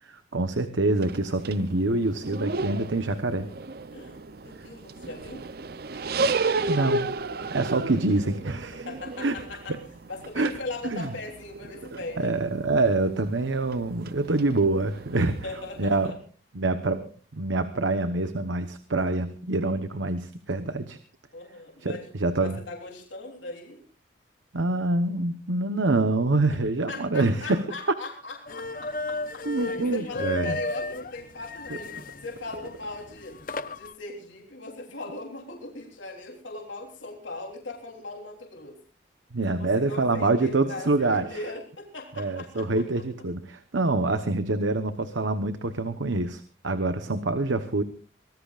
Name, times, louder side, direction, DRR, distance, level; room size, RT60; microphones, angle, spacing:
voice 1, 0.1-3.5 6.7-7.1 7.5-8.9 9.2-9.3 9.7-9.8 10.4-10.5 10.8-11.1 12.2-15.5 15.8-16.1 16.5-21.0 21.8-22.6 24.5-27.6 29.4-30.6 31.7-31.8 39.3-41.4 42.2-47.8, right 2 dB, 80° right, 9 dB, 1.1 m, -26 dB
sound 1, 0.9-16.1, right 3 dB, 50° right, 0.6 m, -34 dB
voice 2, 3.9-5.4 8.7-9.8 10.1-12.3 15.4-16.2 21.3-22.1 22.4-23.8 26.9-32.0 32.2-33.4 33.7-38.7 39.5-42.8, left 2 dB, 80° left, 1 dB, 3.5 m, -39 dB
sound 2, 28.5-33.9, left 3 dB, 45° left, 0.9 m, -34 dB
24.5 x 19.0 x 2.5 m, 0.38 s
head